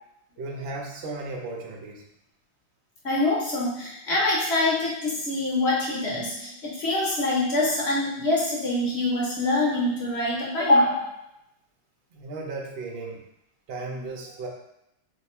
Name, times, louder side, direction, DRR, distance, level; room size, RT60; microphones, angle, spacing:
voice 1, 0.4-2.0 12.1-13.2 13.7-14.5, right 3 dB, 80° right, -1 dB, 0.5 m, -35 dB
voice 2, 3.0-11.2, left 2 dB, 55° left, -5 dB, 0.7 m, -24 dB
2.8 x 2.2 x 4.2 m, 0.82 s
omnidirectional pair, 1.9 m